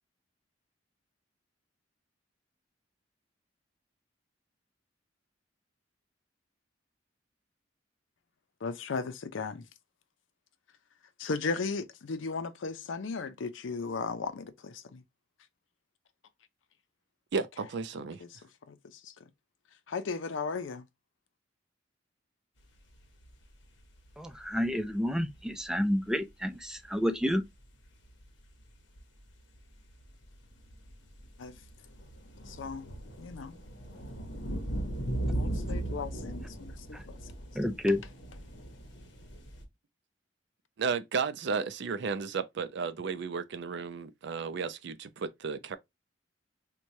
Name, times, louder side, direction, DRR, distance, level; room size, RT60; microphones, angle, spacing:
voice 1, 8.6-9.6 11.2-15.0 18.2-18.3 18.7-18.8 19.0-19.1 19.9-20.8 31.4-31.5 32.5-32.8 33.2-33.6 35.3-37.2, left 4 dB, 90° left, 0.5 m, -36 dB
voice 2, 17.3-18.2 40.8-45.8, right 5 dB, 65° right, 0.4 m, -33 dB
sound 1, 22.6-22.7 22.9-23.4 23.8-25.9 26.5-26.6 26.8-26.9 27.1-27.3 27.9-28.6 28.9-39.6, right 1 dB, 65° left, 1.0 m, -38 dB
voice 3, 24.2-27.4 36.9-37.0 37.6-38.0, left 1 dB, 5° right, 0.4 m, -30 dB
4.5 x 2.2 x 2.7 m
head